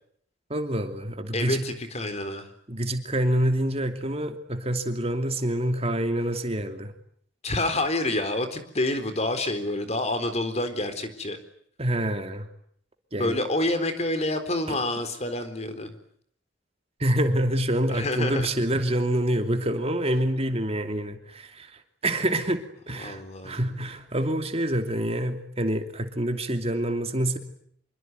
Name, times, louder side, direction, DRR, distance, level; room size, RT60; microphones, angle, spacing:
voice 1, 0.5-1.6 2.7-6.9 11.8-12.5 13.1-13.4 14.7-14.8 17.0-21.7 22.0-27.4, right 1 dB, 35° right, 6 dB, 2.8 m, -27 dB
voice 2, 1.3-2.5 7.4-11.4 13.2-15.9 17.9-18.5 23.0-23.7, left 1 dB, 35° left, 9 dB, 4.0 m, -28 dB
26.5 x 24.0 x 9.5 m, 0.66 s
head